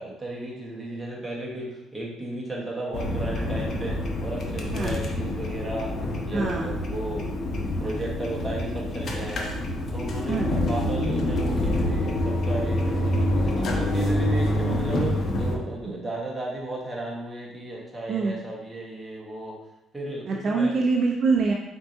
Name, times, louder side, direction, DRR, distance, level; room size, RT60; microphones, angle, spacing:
voice 1, 0.0-5.9 6.3-7.3 7.8-9.5 9.9-19.6 19.9-20.8, right 2 dB, 10° right, -4 dB, 1.3 m, -34 dB
sound 1, 2.9-15.6, left 1 dB, 45° left, 0.8 m, -27 dB
voice 2, 6.3-6.7 10.3-10.5 18.1-18.3 20.3-21.5, right 4 dB, 45° right, 0 dB, 0.5 m, -24 dB
4.5 x 4.4 x 2.7 m, 0.91 s
cardioid pair, 115°, 0 cm